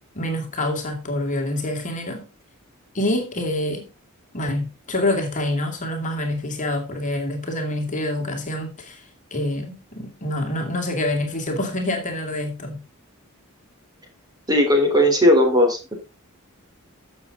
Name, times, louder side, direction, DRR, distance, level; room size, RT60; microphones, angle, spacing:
voice 1, 0.1-2.2 2.9-3.9 4.3-9.0 9.3-12.8, left 1 dB, 35° left, 2.5 m, -26 dB
voice 2, 14.5-15.9, left 1 dB, 20° right, 3.7 m, -17 dB
14.5 x 6.9 x 3.9 m
head